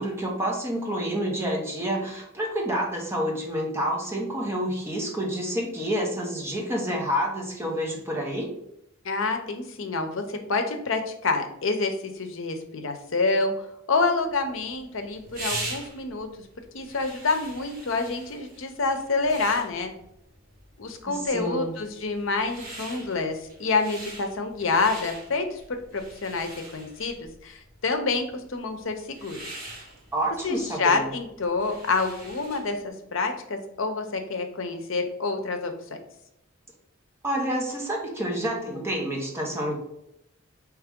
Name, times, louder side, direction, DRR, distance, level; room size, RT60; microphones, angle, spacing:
voice 1, 0.0-8.5 21.0-21.7 30.1-31.1 37.2-39.8, equal, 10° right, -1 dB, 1.1 m, -28 dB
voice 2, 9.0-16.3 16.7-19.9 20.8-29.5 30.4-36.0, left 3 dB, 70° left, 6 dB, 0.7 m, -28 dB
sound 1, 14.3-32.8, right 2 dB, 45° right, 1.7 m, -42 dB
4.7 x 3.1 x 3.6 m, 0.79 s
head